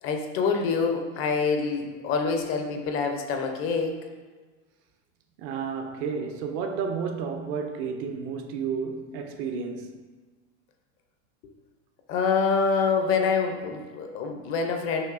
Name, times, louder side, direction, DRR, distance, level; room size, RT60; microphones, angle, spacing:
voice 1, 0.0-4.0 12.1-15.0, left 5 dB, 40° left, 0.5 m, -26 dB
voice 2, 5.4-10.0, right 6 dB, 45° right, 0.4 m, -31 dB
5.7 x 2.6 x 2.4 m
supercardioid pair, 135°, 35 cm